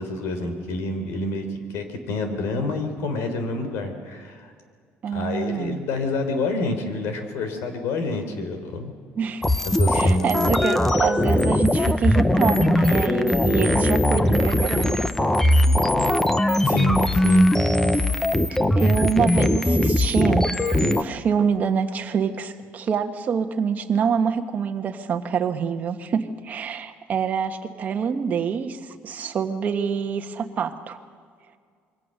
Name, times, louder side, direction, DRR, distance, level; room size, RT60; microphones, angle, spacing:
voice 1, 0.0-4.5 5.1-8.9 9.7-10.5 16.6-17.5 18.6-19.0, left 2 dB, 75° left, 7 dB, 3.8 m, -28 dB
voice 2, 5.0-5.8 9.2-9.4 9.9-15.0 17.8-18.1 18.8-20.5 20.7-31.0, right 6 dB, 35° right, 6 dB, 1.4 m, -26 dB
sound 1, 9.4-21.0, left 1 dB, 10° left, 0.9 m, -20 dB
26.5 x 23.0 x 6.6 m, 2.1 s
cardioid pair, 160°, 5 cm